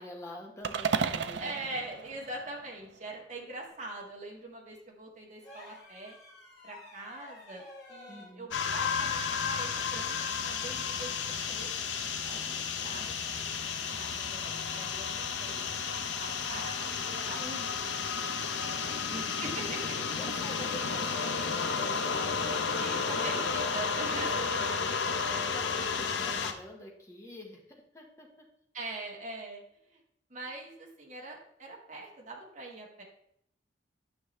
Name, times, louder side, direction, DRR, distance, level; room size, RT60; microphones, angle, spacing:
voice 1, 0.0-1.8 8.1-8.5 18.6-18.9 19.8-23.5 25.2-28.5, left 1 dB, 15° left, -1 dB, 1.4 m, -47 dB
sound 1, 0.6-3.0, right 6 dB, 80° right, 0.5 m, -33 dB
voice 2, 1.4-6.1 6.6-7.6 7.9-13.2 13.5-17.7 18.2-18.3 18.7-20.0 22.8-25.3 28.7-30.0 30.3-33.0, right 2 dB, 45° right, -1 dB, 1.7 m, -43 dB
sound 2, 5.4-8.4 10.0-10.2, left 2 dB, 35° left, 3.4 m, -51 dB
sound 3, 8.5-26.5, left 5 dB, 85° left, 0.8 m, -32 dB
9.6 x 5.8 x 3.2 m, 0.73 s
head